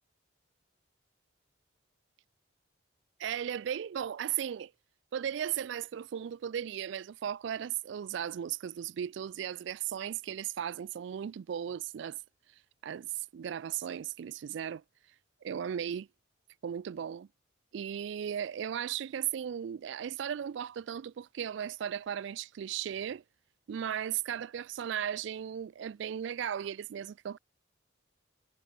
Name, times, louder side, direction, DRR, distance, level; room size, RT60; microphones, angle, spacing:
voice 1, 3.2-4.7 5.1-12.2 12.8-14.8 15.4-16.1 16.6-17.3 17.7-23.2 23.7-27.4, right 9 dB, 65° right, 0.3 m, -36 dB
head